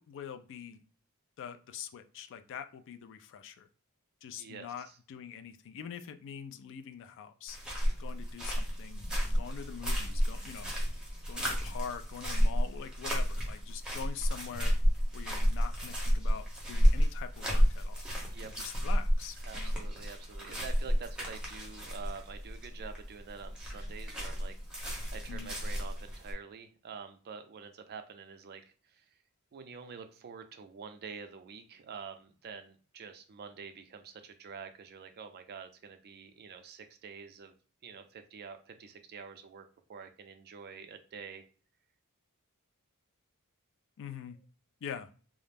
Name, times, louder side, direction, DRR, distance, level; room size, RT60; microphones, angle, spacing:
voice 1, 0.1-0.8 1.4-3.7 4.2-7.6 8.0-9.0 9.3-10.7 11.3-14.8 15.1-18.0 18.4-19.8 25.3-25.5 44.0-44.4 44.8-45.1, left 8 dB, 60° left, 9 dB, 0.3 m, -44 dB
sound 1, 7.5-26.3, equal, 5° right, 0.7 m, -31 dB
voice 2, 19.4-28.6 28.9-29.0 29.5-37.5 37.8-41.5, right 5 dB, 45° right, 8 dB, 0.4 m, -47 dB
2.4 x 2.0 x 3.3 m, 0.39 s
head